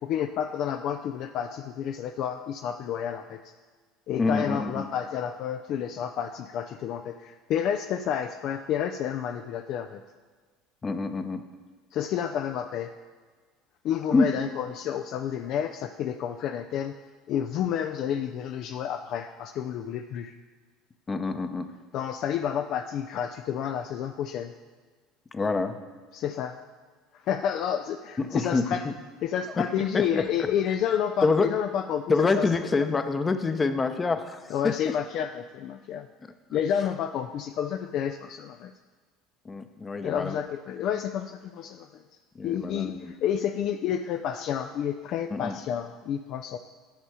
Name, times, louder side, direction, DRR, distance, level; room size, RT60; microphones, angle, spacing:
voice 1, 0.0-3.5 4.1-10.0 11.9-12.9 13.8-17.0 17.3-20.4 21.9-24.5 26.1-26.6 27.1-28.8 29.2-32.5 34.5-36.1 36.5-38.7 40.0-42.0 42.4-46.6, left 9 dB, 55° left, 7 dB, 0.4 m, -30 dB
voice 2, 4.2-4.9 10.8-11.4 14.1-14.3 21.1-21.7 25.3-25.8 28.2-28.7 29.6-29.7 29.9-30.5 31.2-31.5 32.1-34.9 39.4-40.4 42.3-43.1 45.3-45.6, left 4 dB, 25° left, 9 dB, 0.7 m, -26 dB
10.0 x 5.5 x 4.8 m, 1.4 s
hypercardioid pair, 70°, 0 cm